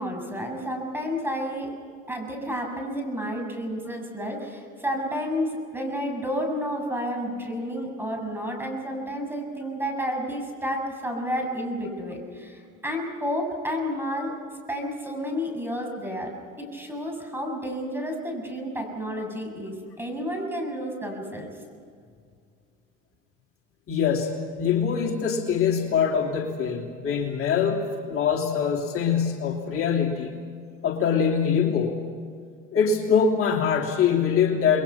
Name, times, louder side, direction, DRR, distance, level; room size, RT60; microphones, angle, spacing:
voice 1, 0.0-1.7 2.1-14.3 14.7-16.3 16.6-21.5, equal, 5° right, 2 dB, 7.5 m, -31 dB
voice 2, 23.9-30.4 30.8-32.0 32.7-34.8, left 6 dB, 45° left, -1 dB, 3.0 m, -23 dB
28.5 x 22.0 x 5.9 m, 2.2 s
supercardioid pair, 85°, 30 cm